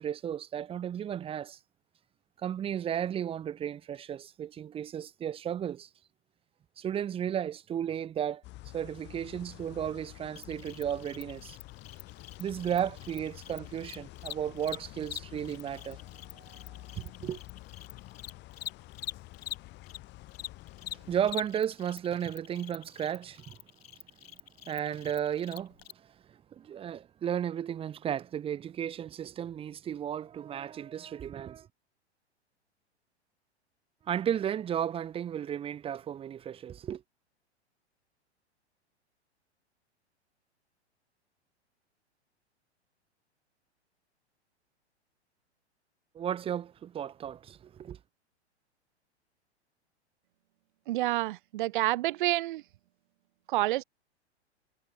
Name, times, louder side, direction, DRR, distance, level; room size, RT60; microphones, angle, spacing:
voice 1, 0.0-1.6 2.4-5.9 6.8-8.4 8.7-11.6 12.4-16.0 16.3-17.4 20.9-23.6 24.6-25.7 26.3-31.7 34.1-37.0 46.1-48.0, right 9 dB, 15° right, 1.0 m, -34 dB
sound 1, 8.4-21.3, left 18 dB, 30° left, 3.0 m, -49 dB
Cricket, 10.3-20.0 20.3-25.9, left 11 dB, 60° left, 0.7 m, -45 dB
voice 2, 50.9-52.6 53.5-53.8, right 16 dB, 45° right, 0.9 m, -28 dB
figure-of-eight pair, 100°, 34 cm